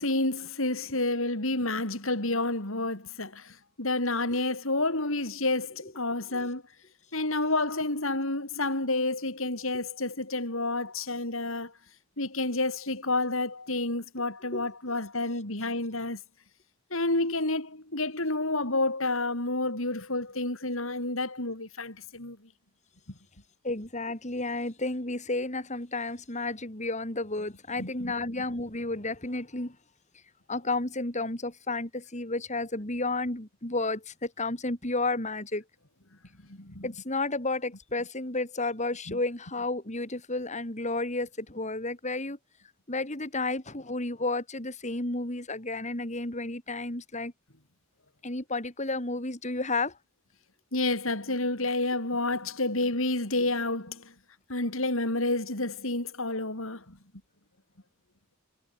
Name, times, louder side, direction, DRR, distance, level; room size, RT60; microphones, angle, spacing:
voice 1, 0.0-6.6 7.1-11.7 12.2-16.2 16.9-22.4 27.8-28.1 36.5-36.9 39.1-39.2 50.7-54.1 54.5-57.0, left 2 dB, 70° left, 5.0 m, -29 dB
voice 2, 23.6-29.8 30.5-35.6 36.8-42.4 42.9-47.3 48.2-50.0, left 2 dB, 35° left, 3.9 m, -32 dB
head